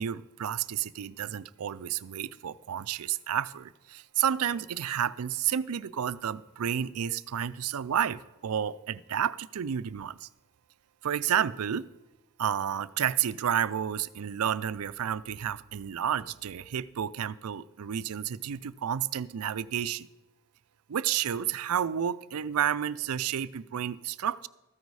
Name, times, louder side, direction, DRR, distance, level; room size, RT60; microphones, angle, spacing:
voice 1, 0.0-10.3 11.0-11.9 12.4-20.1 20.9-24.5, right 9 dB, 80° right, 17 dB, 0.4 m, -31 dB
14.0 x 9.4 x 4.8 m, 1.0 s
head